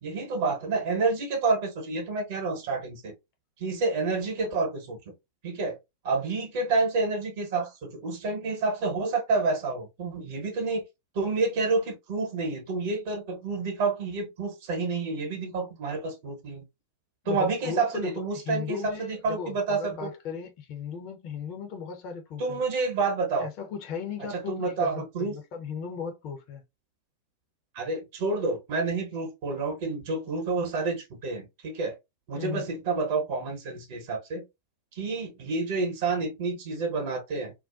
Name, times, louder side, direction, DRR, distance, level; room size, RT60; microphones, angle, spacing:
voice 1, 0.0-3.1 3.6-5.0 5.4-5.8 6.0-10.8 11.1-16.6 17.3-20.1 22.4-23.5 24.3-25.3 27.7-31.9 32.3-34.4 34.9-37.5, right 3 dB, 50° right, 0.9 m, -29 dB
voice 2, 17.2-22.6 23.4-26.6 32.3-32.7, left 6 dB, 40° left, 0.6 m, -37 dB
2.4 x 2.1 x 2.4 m
figure-of-eight pair, 90°, 0 cm